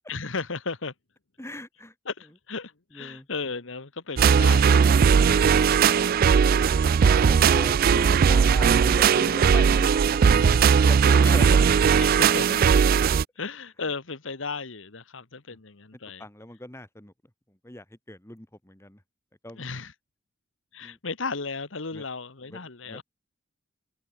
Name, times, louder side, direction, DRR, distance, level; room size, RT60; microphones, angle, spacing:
voice 1, 0.1-0.9 2.0-5.7 12.0-12.6 13.4-16.2 19.5-19.9 20.7-23.0, left 4 dB, 80° left, 1.5 m, -35 dB
voice 2, 1.4-1.9 2.9-3.3 6.5-11.7 16.2-17.1 17.6-19.0 19.4-19.7 20.8-21.0 21.9-22.0 22.5-22.6 22.9-23.0, left 1 dB, 15° left, 2.6 m, -39 dB
sound 1, 4.2-13.2, right 6 dB, 50° right, 0.3 m, -19 dB
head